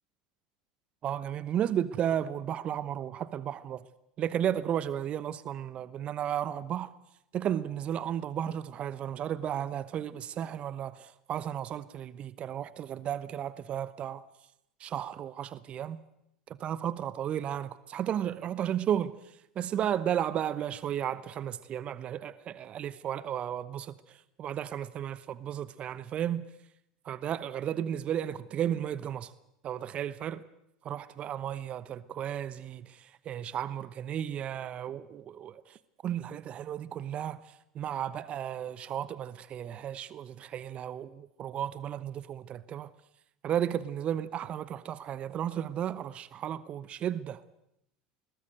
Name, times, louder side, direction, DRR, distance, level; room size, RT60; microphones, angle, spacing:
voice 1, 1.0-3.9 4.2-6.9 7.3-14.2 14.8-16.0 16.5-19.1 19.5-26.5 27.0-29.3 29.6-30.4 30.8-35.8 36.0-42.9 43.4-47.4, right 10 dB, 40° right, 0.9 m, -34 dB
22.0 x 19.0 x 7.8 m
hypercardioid pair, 80°, 3 cm